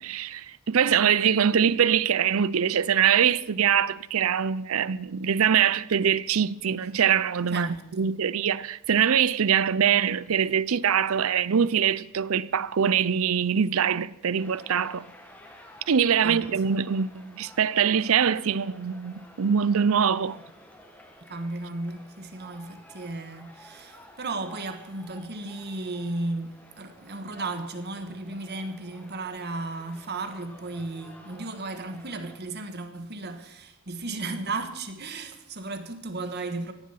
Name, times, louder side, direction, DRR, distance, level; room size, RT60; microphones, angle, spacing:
voice 1, 0.0-15.1 15.9-20.4, right 7 dB, 70° right, 0.5 m, -23 dB
voice 2, 7.5-8.1 16.2-16.4 21.3-36.7, right 2 dB, 50° right, 1.5 m, -35 dB
sound 1, 14.4-32.4, left 1 dB, 5° left, 1.8 m, -52 dB
17.0 x 11.5 x 5.8 m
head